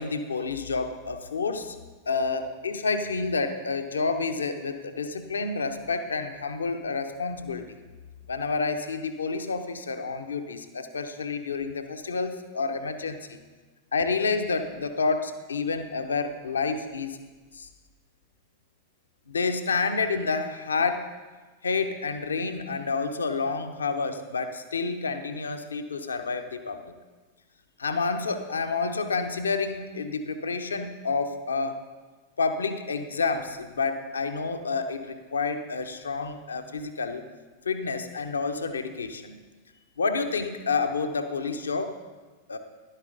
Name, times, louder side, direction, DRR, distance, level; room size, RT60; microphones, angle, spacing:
voice 1, 0.0-1.8 2.1-7.7 8.3-13.4 13.9-17.2 17.5-17.7 19.3-21.1 21.6-26.9 27.8-31.8 32.4-37.2 37.6-39.3 40.0-41.9 42.5-42.6, left 4 dB, 70° left, 8 dB, 0.8 m, -29 dB
11.5 x 11.0 x 3.9 m, 1.3 s
figure-of-eight pair, 90°, 0 cm